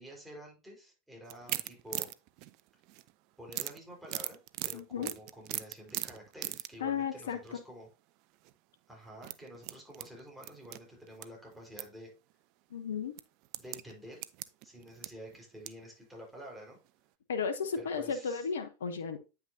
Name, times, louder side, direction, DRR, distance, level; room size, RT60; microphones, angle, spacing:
voice 1, 0.0-2.1 3.4-7.9 8.9-12.1 13.6-14.2 14.6-16.8 17.8-18.5, equal, 5° right, -3 dB, 4.4 m, -49 dB
sound 1, 1.3-3.1 3.5-6.8 7.2-7.5 8.3-8.5 9.1-11.3 11.5-11.9 12.3-12.4 13.2-15.8 16.3-16.4 16.7-16.8, right 17 dB, 55° right, 0.5 m, -39 dB
voice 2, 4.7-5.1 6.8-7.6 12.7-13.2 17.3-19.2, left 6 dB, 75° left, 8 dB, 0.8 m, -34 dB
9.0 x 5.9 x 2.7 m, 0.30 s
hypercardioid pair, 90°, 0 cm